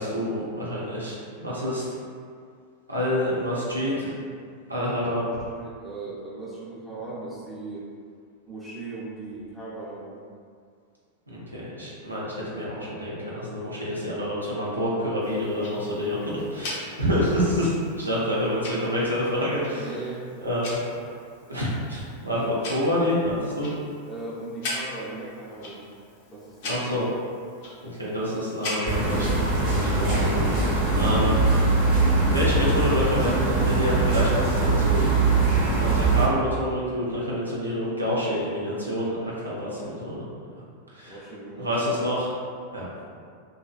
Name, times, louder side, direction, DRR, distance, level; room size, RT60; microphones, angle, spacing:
voice 1, 0.0-1.8 2.9-4.1 4.7-5.3 11.3-19.9 20.4-20.8 21.5-23.7 26.7-27.1 28.0-31.4 32.3-35.3 35.7-40.2 40.9-41.2 41.6-42.3 42.7-42.9, equal, 80° right, -7 dB, 0.6 m, -27 dB
voice 2, 5.6-7.9 8.5-10.2 16.3-16.8 18.0-18.1 19.7-20.2 24.1-25.9 26.3-27.1 30.7-31.1 41.0-42.1, right 2 dB, 5° left, -7 dB, 0.6 m, -38 dB
Tick-tock, 15.2-29.2, left 2 dB, 50° left, 0.5 m, -40 dB
sound 1, 28.9-36.3, right 3 dB, 50° right, 0.8 m, -22 dB
2.5 x 2.4 x 2.3 m, 2.2 s
figure-of-eight pair, 90°, 0 cm